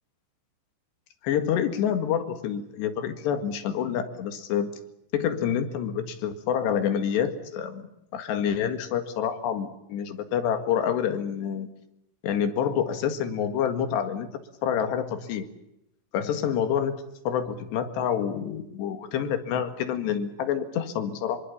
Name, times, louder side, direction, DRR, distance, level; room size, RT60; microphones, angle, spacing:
voice 1, 1.2-4.7 5.1-7.8 8.1-11.7 12.2-14.3 14.6-15.5 16.1-17.0 17.3-21.4, left 8 dB, 80° left, 8 dB, 4.0 m, -27 dB
25.5 x 23.5 x 7.2 m, 0.84 s
omnidirectional pair, 4.8 m